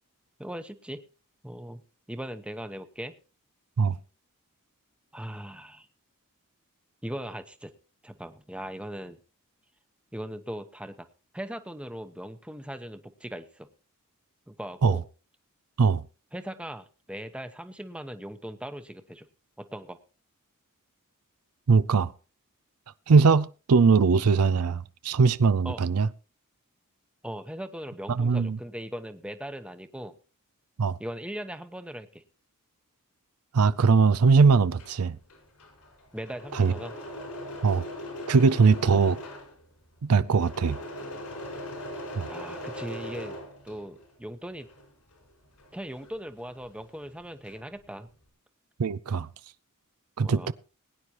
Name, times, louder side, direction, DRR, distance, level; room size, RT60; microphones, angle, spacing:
voice 1, 0.4-1.1 1.4-1.8 2.1-3.1 5.1-5.9 7.0-7.7 8.0-9.2 10.1-11.1 11.3-13.7 14.5-15.0 16.3-19.3 19.6-20.0 25.6-25.8 27.2-30.1 31.0-32.2 36.1-36.9 38.8-39.1 42.3-43.4 43.6-44.7 45.7-48.1 50.2-50.5, equal, 5° right, 0.9 m, -39 dB
voice 2, 21.7-22.1 23.1-26.1 28.1-28.6 30.8-31.0 33.5-35.2 36.5-36.7 37.6-37.8 38.3-39.2 40.0-40.8 42.1-42.3 48.8-49.3 50.2-50.5, right 5 dB, 80° right, 0.5 m, -21 dB
Engine / Mechanisms, 34.5-44.1 44.5-46.8 47.1-47.8, left 1 dB, 85° left, 5.0 m, -40 dB
21.0 x 9.7 x 3.0 m
head